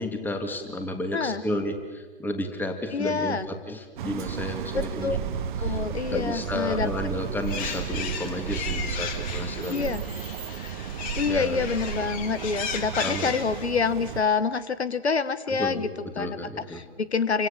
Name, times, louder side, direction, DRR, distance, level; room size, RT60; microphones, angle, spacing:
voice 1, 0.0-5.2 5.6-5.8 6.1-9.9 11.3-11.6 13.0-13.3 15.5-16.8, left 1 dB, 5° left, 5 dB, 2.6 m, -32 dB
voice 2, 2.9-3.5 4.7-5.2 5.6-6.9 9.6-10.0 11.2-15.9 16.2-17.5, left 5 dB, 75° left, 15 dB, 1.2 m, -27 dB
sound 1, 4.0-14.2, right 8 dB, 45° right, 1.5 m, -33 dB
sound 2, 7.5-13.7, left 7 dB, 25° left, 2.5 m, -36 dB
28.5 x 25.5 x 7.3 m, 1.4 s
figure-of-eight pair, 120°, 33 cm